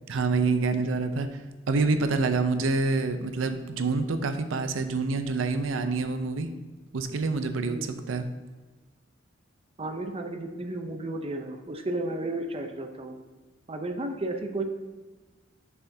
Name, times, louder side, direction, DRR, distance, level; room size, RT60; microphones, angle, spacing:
voice 1, 0.1-6.5 6.9-8.3, right 3 dB, 80° right, 8 dB, 0.5 m, -27 dB
voice 2, 9.8-13.2 13.7-14.6, right 2 dB, 30° right, 5 dB, 0.6 m, -33 dB
6.9 x 6.8 x 2.7 m, 1.3 s
head